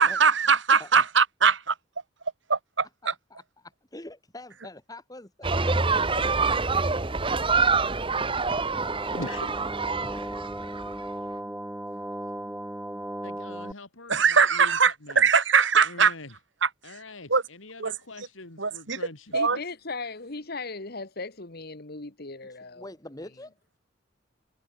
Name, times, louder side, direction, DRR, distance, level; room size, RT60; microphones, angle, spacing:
voice 1, 0.0-1.7 2.5-3.1 14.1-16.1 16.6-16.7 17.3-17.4 17.8-17.9 18.6-19.0 19.3-19.6, right 6 dB, 65° right, 2.0 m, -21 dB
voice 2, 3.3-6.5 22.4-23.5, left 1 dB, 20° left, 1.9 m, -44 dB
sound 1, 5.4-11.0, right 4 dB, 25° right, 1.2 m, -26 dB
sound 2, 8.7-13.7, right 1 dB, 5° right, 1.2 m, -36 dB
voice 3, 9.1-9.5 13.2-15.3 15.8-16.3 16.8-19.4, left 2 dB, 75° left, 2.7 m, -43 dB
voice 4, 19.3-22.8, left 3 dB, 50° left, 1.6 m, -37 dB
head